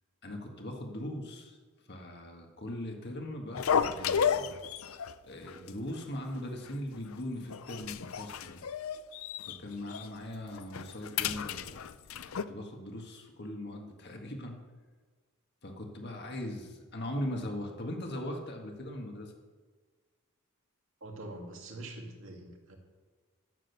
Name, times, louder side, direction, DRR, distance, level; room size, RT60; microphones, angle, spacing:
voice 1, 0.2-1.6 1.9-4.5 5.2-8.6 9.4-11.8 12.1-14.6 15.6-19.3, left 1 dB, 50° left, 2 dB, 1.7 m, -40 dB
sound 1, 3.5-5.1 5.5-5.7 6.0-6.1 6.7-7.2 7.5-9.6 9.9-10.1 10.5-12.4, left 7 dB, 70° left, 0.5 m, -32 dB
voice 2, 21.0-22.8, right 2 dB, 60° right, 1 dB, 2.3 m, -44 dB
12.5 x 7.6 x 6.7 m, 1.5 s
head